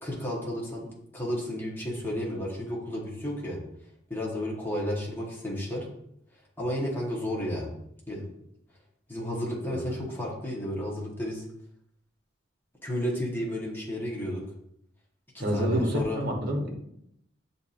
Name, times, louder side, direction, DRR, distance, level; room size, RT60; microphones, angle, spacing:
voice 1, 0.0-3.6 4.1-5.9 6.6-7.7 8.1-8.3 9.1-11.5 12.8-14.4 15.3-16.2, equal, 10° left, -4 dB, 1.0 m, -32 dB
voice 2, 15.4-16.7, equal, 55° right, 1 dB, 0.8 m, -28 dB
7.1 x 2.7 x 2.4 m, 0.75 s
head